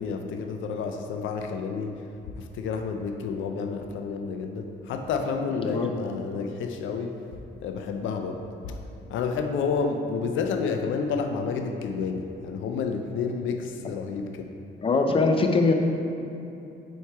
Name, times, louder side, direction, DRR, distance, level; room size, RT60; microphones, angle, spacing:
voice 1, 0.0-2.0 2.4-7.2 7.6-8.8 9.1-14.5, left 5 dB, 75° left, 5 dB, 0.5 m, -30 dB
voice 2, 14.8-15.7, left 3 dB, 25° left, 4 dB, 0.5 m, -22 dB
4.5 x 4.4 x 4.6 m, 2.8 s
cardioid pair, 90°, 20 cm